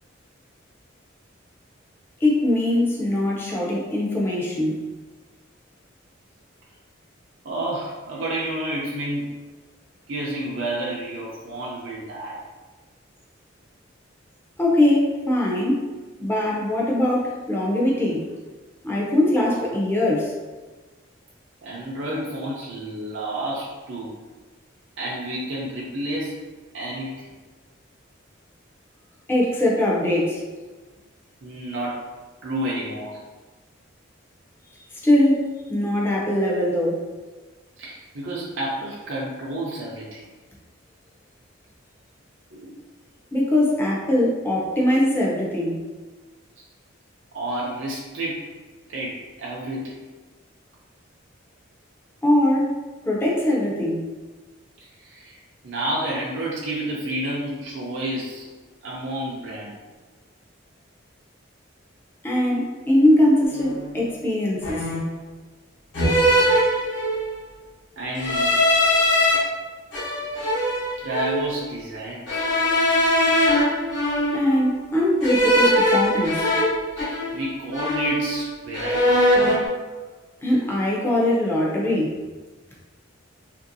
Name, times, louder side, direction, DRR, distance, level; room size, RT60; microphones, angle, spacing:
voice 1, 2.2-4.8 14.6-15.8 16.2-18.3 18.8-20.3 29.3-30.4 35.0-37.0 43.3-45.8 52.2-52.8 53.1-54.1 62.2-64.8 74.3-76.5 80.4-82.1, left 1 dB, 10° left, -4 dB, 0.5 m, -21 dB
voice 2, 7.4-9.3 10.1-12.4 21.6-24.2 25.0-26.3 26.7-27.3 31.4-32.1 32.4-33.2 37.8-40.2 42.5-42.7 46.6-46.7 47.3-48.5 48.9-50.1 55.0-55.4 55.6-58.5 58.8-59.8 68.0-68.6 71.0-72.5 74.9-75.0 77.0-79.3, right 1 dB, 65° right, -5 dB, 0.5 m, -30 dB
sound 1, 63.5-63.8 64.6-65.2 65.9-67.4 68.2-69.4 69.9-71.5 72.3-74.6 75.2-77.5 77.7-78.5 78.7-79.7, equal, 60° left, 1.0 m, -21 dB
2.9 x 2.6 x 2.6 m, 1.3 s
head